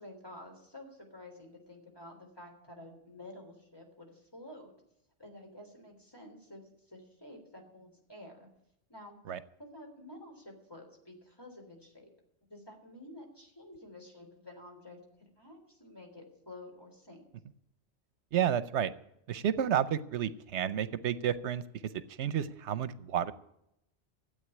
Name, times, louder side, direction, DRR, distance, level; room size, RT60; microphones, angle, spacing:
voice 1, 0.0-4.7 5.2-8.5 8.9-9.2 9.6-12.1 12.5-15.0 15.4-17.3, left 1 dB, 20° left, 1 dB, 3.5 m, -50 dB
voice 2, 18.3-18.9 19.3-21.6 22.2-23.3, right 9 dB, 80° right, 14 dB, 1.0 m, -30 dB
13.0 x 8.2 x 9.9 m, 0.79 s
omnidirectional pair, 1.1 m